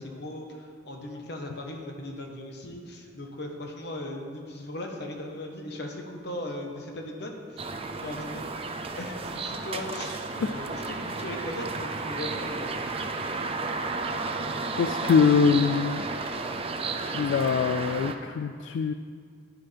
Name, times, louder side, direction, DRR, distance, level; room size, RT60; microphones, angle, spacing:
voice 1, 0.0-7.7 7.9-8.4 9.0-12.7, left 1 dB, 65° left, 2 dB, 1.2 m, -38 dB
sound 1, 7.6-18.1, right 3 dB, 30° right, 0.5 m, -33 dB
voice 2, 14.8-16.1 17.1-18.9, left 5 dB, 85° left, 9 dB, 0.3 m, -23 dB
9.7 x 9.7 x 3.4 m, 2.1 s
head